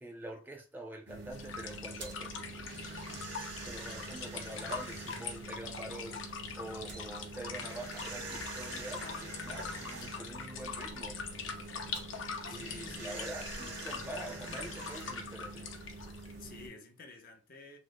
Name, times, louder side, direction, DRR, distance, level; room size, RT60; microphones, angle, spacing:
voice 1, 0.0-2.7 3.1-3.2 3.6-11.2 12.5-15.7, right 1 dB, 10° right, 0.4 m, -46 dB
sound 1, 1.1-16.7, right 2 dB, 70° right, 1.0 m, -45 dB
sound 2, 1.3-16.3, left 5 dB, 85° left, 0.7 m, -43 dB
voice 2, 8.6-9.3 12.5-13.3 16.4-17.8, left 3 dB, 45° left, 0.6 m, -51 dB
3.1 x 2.0 x 3.8 m
head